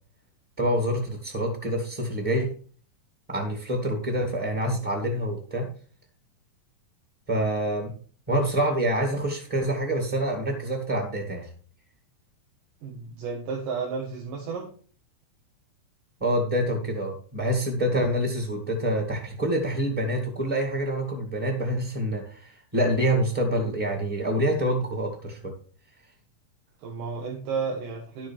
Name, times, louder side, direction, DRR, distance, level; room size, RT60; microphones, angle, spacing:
voice 1, 0.6-2.5 3.3-5.7 7.3-7.9 8.3-11.5 16.2-25.5, right 1 dB, 10° right, 2 dB, 1.8 m, -26 dB
voice 2, 12.8-14.7 26.8-28.3, right 5 dB, 85° right, 0 dB, 3.3 m, -32 dB
11.5 x 7.4 x 4.5 m, 0.42 s
omnidirectional pair, 3.7 m